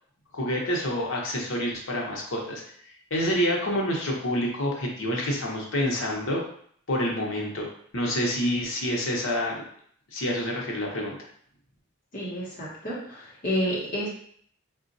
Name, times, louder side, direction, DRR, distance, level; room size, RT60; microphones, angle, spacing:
voice 1, 0.3-2.6 3.1-6.4 6.9-7.7 7.9-9.6 10.1-11.1, equal, 65° left, -1 dB, 0.8 m, -27 dB
voice 2, 12.1-14.1, equal, 40° left, -5 dB, 0.9 m, -30 dB
3.8 x 2.3 x 2.6 m, 0.62 s
head